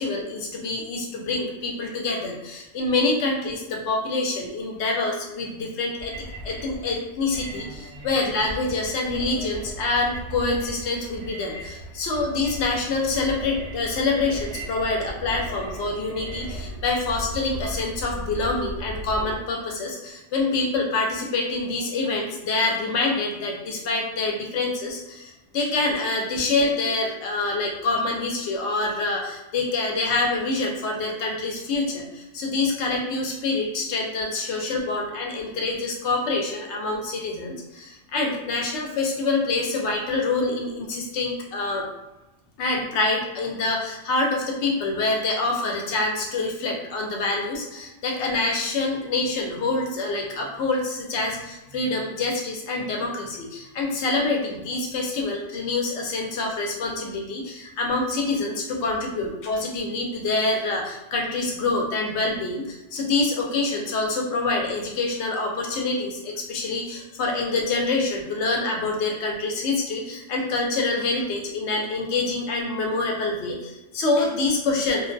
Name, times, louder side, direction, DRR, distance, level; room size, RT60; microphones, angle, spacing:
voice 1, 0.0-6.1 6.4-41.9 42.6-75.1, left 3 dB, 70° left, 0 dB, 0.8 m, -26 dB
sound 1, 5.9-19.4, equal, 50° right, 0.7 m, -37 dB
2.4 x 2.1 x 2.5 m, 1.0 s
omnidirectional pair, 1.3 m